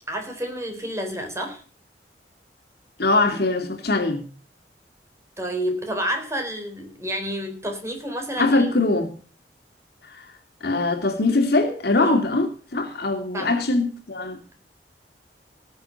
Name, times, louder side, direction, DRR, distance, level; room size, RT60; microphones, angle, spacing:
voice 1, 0.1-1.6 5.4-8.7 12.0-12.2 13.3-13.5, equal, 15° right, 4.0 m, -29 dB
voice 2, 3.0-4.2 8.4-9.1 10.6-12.5 12.7-14.4, left 2 dB, 65° left, 2.6 m, -22 dB
18.0 x 7.3 x 6.5 m
head